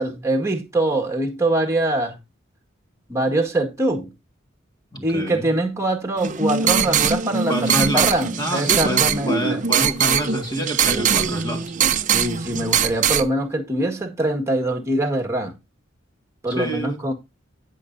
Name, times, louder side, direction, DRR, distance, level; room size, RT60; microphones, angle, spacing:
voice 1, 0.0-2.2 3.1-4.1 5.0-9.6 12.1-15.5 16.4-17.1, right 1 dB, 15° right, 1.8 m, -23 dB
voice 2, 4.9-5.5 7.5-11.7 16.5-17.0, right 1 dB, 20° left, 1.8 m, -27 dB
sound 1, 6.2-13.2, right 7 dB, 40° right, 0.7 m, -21 dB
17.0 x 6.3 x 2.7 m
head